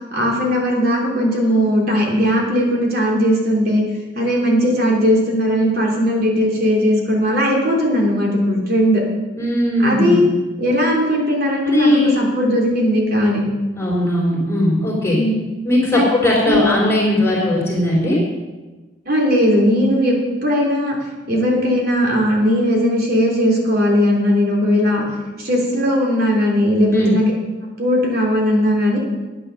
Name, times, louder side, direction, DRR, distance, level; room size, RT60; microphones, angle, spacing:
voice 1, 0.1-3.8 4.1-9.0 9.8-10.2 10.6-13.4 15.1-15.3 15.9-16.0 16.5-16.6 19.0-20.2 20.4-21.0 21.3-25.0 25.4-27.2 27.8-29.0, equal, 55° right, -1 dB, 3.2 m, -18 dB
voice 2, 9.4-10.2 11.6-12.1 13.8-15.2 15.6-18.2 26.9-27.1, left 1 dB, 15° left, -5 dB, 3.7 m, -18 dB
10.5 x 9.9 x 6.5 m, 1.2 s
head